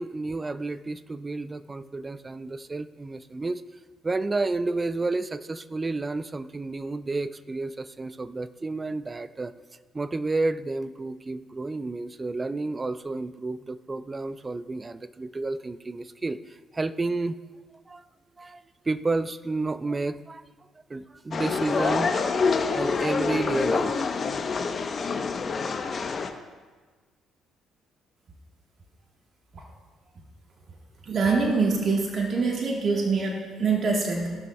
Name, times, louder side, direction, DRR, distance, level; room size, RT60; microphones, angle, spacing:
voice 1, 0.0-3.6 4.0-9.5 9.9-16.4 16.7-17.4 17.9-18.0 18.4-18.6 18.9-20.4 20.9-22.1 22.7-24.0, right 3 dB, 25° right, 15 dB, 0.4 m, -30 dB
sound 1, 21.3-26.3, left 5 dB, 45° left, 0.7 m, -26 dB
voice 2, 31.1-34.4, right 4 dB, 50° right, 1 dB, 1.2 m, -24 dB
17.0 x 6.0 x 2.2 m, 1.4 s
supercardioid pair, 60°, 0 cm